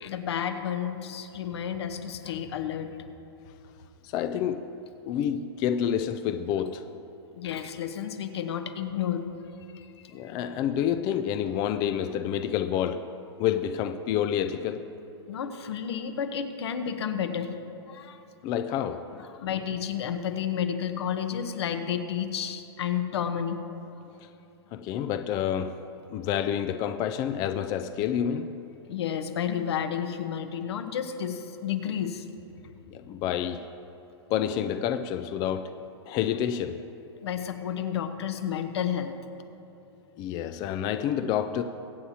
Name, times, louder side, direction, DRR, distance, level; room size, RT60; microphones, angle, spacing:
voice 1, 0.0-2.9 7.3-9.3 9.7-10.3 15.3-17.6 17.9-18.2 19.2-23.6 28.8-32.3 37.1-39.2, left 8 dB, 75° left, 8 dB, 1.0 m, -31 dB
voice 2, 4.0-4.7 5.1-6.9 10.1-13.1 13.4-14.9 18.4-19.2 24.7-25.8 26.1-28.6 32.9-33.7 34.3-35.7 36.1-36.8 40.2-41.6, left 9 dB, 30° left, 9 dB, 0.4 m, -28 dB
23.0 x 8.2 x 2.8 m, 2.8 s
hypercardioid pair, 135°, 14 cm